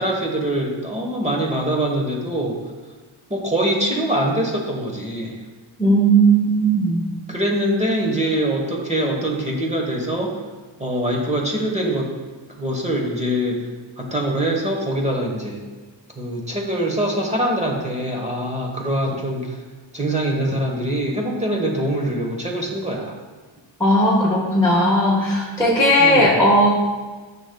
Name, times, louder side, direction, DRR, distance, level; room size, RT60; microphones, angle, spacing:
voice 1, 0.0-2.6 3.3-5.4 7.3-10.4 10.8-12.1 12.6-13.7 14.0-15.6 16.1-19.6 19.9-23.1 26.0-26.4, right 1 dB, 15° right, -1 dB, 1.1 m, -23 dB
voice 2, 5.8-7.0 23.8-26.7, right 1 dB, 5° left, -7 dB, 1.3 m, -16 dB
9.9 x 6.7 x 2.2 m, 1.3 s
cardioid pair, 90°, 46 cm